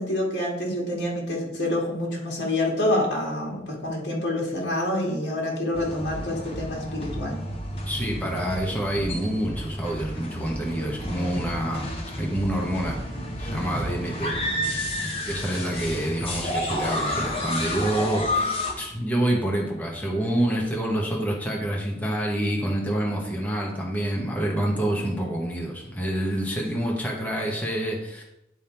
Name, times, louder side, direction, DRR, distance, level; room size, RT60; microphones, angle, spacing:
voice 1, 0.0-7.4, left 1 dB, 65° left, -2 dB, 2.0 m, -27 dB
sound 1, 5.7-18.7, left 1 dB, 30° left, 1.1 m, -30 dB
voice 2, 7.8-13.0 13.4-14.3 15.2-28.2, right 1 dB, 10° left, -2 dB, 1.2 m, -27 dB
10.5 x 3.6 x 4.4 m, 0.87 s
head